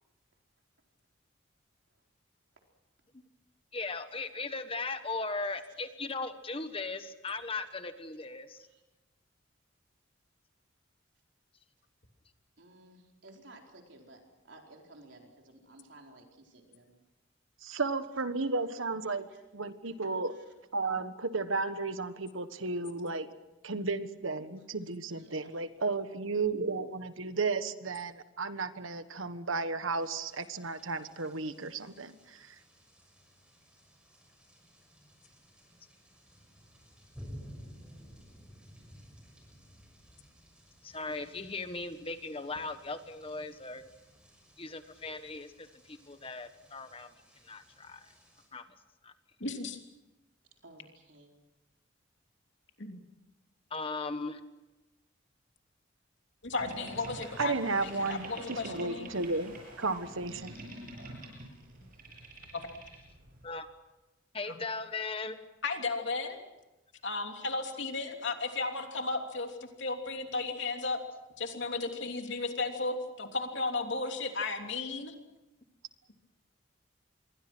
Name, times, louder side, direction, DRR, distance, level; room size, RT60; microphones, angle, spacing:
voice 1, 3.7-8.7 40.8-43.8 44.6-47.1 47.4-48.1 48.5-48.7 49.0-49.1 53.7-54.4 63.4-63.7 64.3-65.4, left 3 dB, 30° left, 9 dB, 1.3 m, -38 dB
voice 2, 12.6-17.0 19.0-19.4 20.3-20.5 25.1-25.6 50.6-51.3, right 2 dB, 65° right, 2 dB, 4.4 m, -56 dB
voice 3, 17.6-19.3 19.5-20.4 20.7-23.3 23.6-32.5 57.4-60.5, right 3 dB, 85° right, 11 dB, 1.4 m, -33 dB
sound 1, 30.0-48.5, equal, 5° right, 6.2 m, -55 dB
voice 4, 49.4-49.8 52.8-53.0 56.4-59.1 62.5-62.6 65.6-66.4 67.0-71.0 71.4-75.1, left 3 dB, 65° left, 4 dB, 3.1 m, -34 dB
Boat Water vehicle, 56.6-63.5, right 1 dB, 45° right, 7.7 m, -47 dB
27.5 x 23.0 x 6.2 m, 1.0 s
head